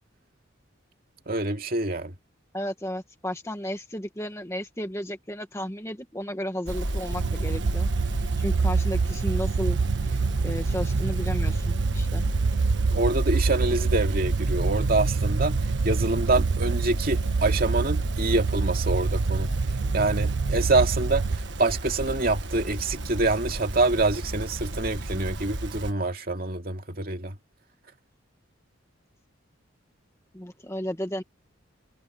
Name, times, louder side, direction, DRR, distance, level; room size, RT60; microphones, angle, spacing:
voice 1, 1.3-2.1 12.9-15.6 15.8-19.5 19.9-27.3, right 2 dB, 50° right, 2.5 m, -26 dB
voice 2, 2.5-12.2 30.3-31.2, equal, 15° left, 1.5 m, -34 dB
sound 1, 6.7-25.9, right 1 dB, 65° right, 1.4 m, -31 dB
sound 2, 7.1-21.4, right 4 dB, 85° right, 0.6 m, -27 dB
head